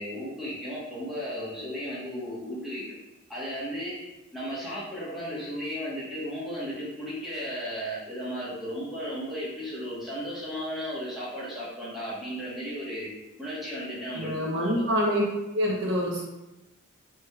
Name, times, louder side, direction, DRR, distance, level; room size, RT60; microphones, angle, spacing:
voice 1, 0.0-2.9 3.3-4.0 4.3-13.1 13.4-14.8, equal, ahead, -10 dB, 1.0 m, -35 dB
voice 2, 14.1-15.2 15.5-16.2, equal, 55° right, -3 dB, 0.6 m, -26 dB
3.4 x 3.1 x 2.2 m, 1.0 s
head